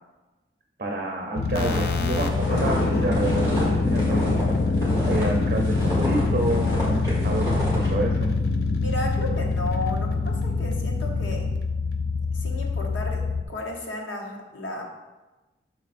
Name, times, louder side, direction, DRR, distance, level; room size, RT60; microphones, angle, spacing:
voice 1, 0.8-4.5 5.0-8.3, right 2 dB, 45° right, 0 dB, 0.6 m, -29 dB
sound 1, 1.4-13.4, left 3 dB, 55° left, 0.5 m, -24 dB
sound 2, 1.5-5.3 5.6-7.9, equal, 20° left, 1.9 m, -31 dB
voice 2, 8.8-11.5 12.3-14.8, left 2 dB, 90° left, 1 dB, 1.1 m, -33 dB
6.2 x 4.2 x 4.2 m, 1.1 s
head